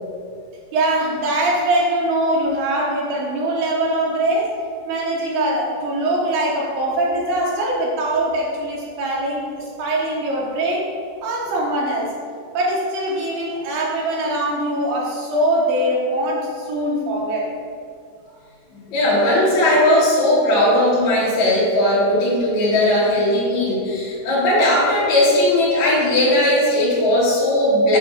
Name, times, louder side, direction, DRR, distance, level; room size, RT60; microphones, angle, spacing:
voice 1, 0.7-4.6 4.9-10.9 11.2-12.1 12.5-17.5, right 1 dB, 80° right, -4 dB, 2.8 m, -22 dB
voice 2, 18.9-28.0, left 1 dB, 55° left, -9 dB, 2.4 m, -17 dB
8.7 x 3.4 x 6.3 m, 2.3 s
omnidirectional pair, 4.7 m